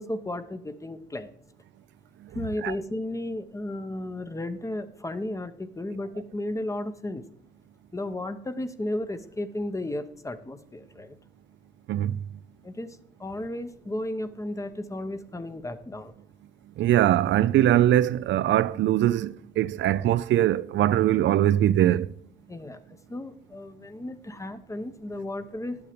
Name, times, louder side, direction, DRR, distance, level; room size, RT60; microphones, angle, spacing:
voice 1, 0.0-1.3 2.3-7.2 7.9-11.2 12.6-16.1 22.5-22.8 23.1-25.8, left 1 dB, 15° left, 0.8 m, -34 dB
voice 2, 16.8-22.1, right 12 dB, 70° right, 0.4 m, -22 dB
11.5 x 7.1 x 5.0 m
cardioid pair, 90°, 20 cm